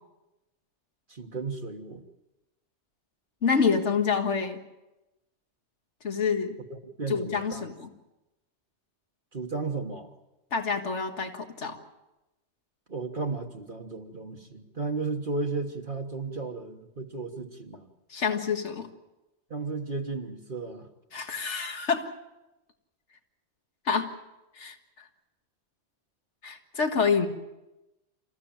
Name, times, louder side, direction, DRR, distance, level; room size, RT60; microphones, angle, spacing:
voice 1, 1.1-2.0 6.7-7.7 9.3-10.1 12.9-17.9 19.5-20.9, right 3 dB, 45° right, 2 dB, 1.6 m, -34 dB
voice 2, 3.4-4.6 6.0-6.6 7.1-7.9 10.5-11.8 18.1-18.9 21.1-22.1 23.9-24.1 24.6-24.8 26.4-27.3, left 5 dB, 80° left, 6 dB, 2.0 m, -27 dB
27.5 x 15.0 x 8.9 m, 0.99 s
omnidirectional pair, 1.2 m